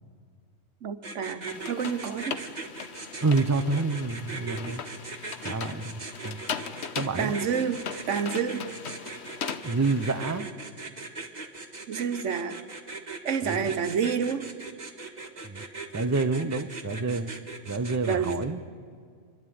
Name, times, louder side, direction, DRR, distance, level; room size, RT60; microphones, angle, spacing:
voice 1, 0.8-2.4 7.2-8.7 11.9-12.6 13.2-14.5 18.1-18.5, right 6 dB, 80° right, 10 dB, 1.3 m, -29 dB
sound 1, 1.0-18.5, right 3 dB, 35° right, 1.7 m, -39 dB
sound 2, 1.5-10.4, left 7 dB, 65° left, 1.1 m, -39 dB
voice 2, 3.2-4.8 5.4-6.4 6.9-7.3 9.6-10.5 13.4-13.6 15.4-15.6 15.9-17.3 17.7-18.6, right 3 dB, 15° right, 9 dB, 0.7 m, -28 dB
28.0 x 12.0 x 9.4 m, 2.1 s
omnidirectional pair, 1.2 m